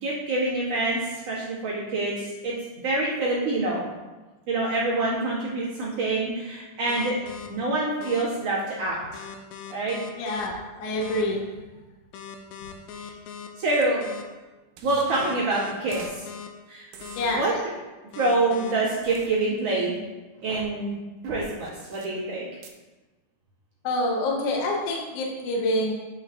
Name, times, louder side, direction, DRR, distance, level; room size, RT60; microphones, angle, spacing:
voice 1, 0.0-1.0 1.3-2.5 2.8-3.9 4.5-7.1 7.5-9.0 9.7-10.0 13.0-13.1 13.6-14.0 14.8-16.3 16.7-16.8 17.4-17.5 18.2-20.0 20.4-20.9 21.2-22.5, right 2 dB, 55° right, -9 dB, 2.6 m, -26 dB
sound 1, 6.9-7.5 8.0-8.2 9.1-10.5 11.0-11.2 12.1-13.5 14.0-14.2 15.1-16.5 17.0-17.2 18.1-18.7, left 7 dB, 85° left, 2.2 m, -40 dB
voice 2, 10.2-11.4 17.2-17.5 23.8-25.9, left 1 dB, 70° left, -1 dB, 1.5 m, -26 dB
sound 2, 13.7-13.8 14.8-15.3 15.9-16.1 16.9-17.4 19.0-19.3 20.3-20.7 21.2-22.1 22.6-22.7, right 5 dB, 80° right, 2.0 m, -42 dB
8.8 x 5.1 x 2.5 m, 1.2 s
omnidirectional pair, 3.8 m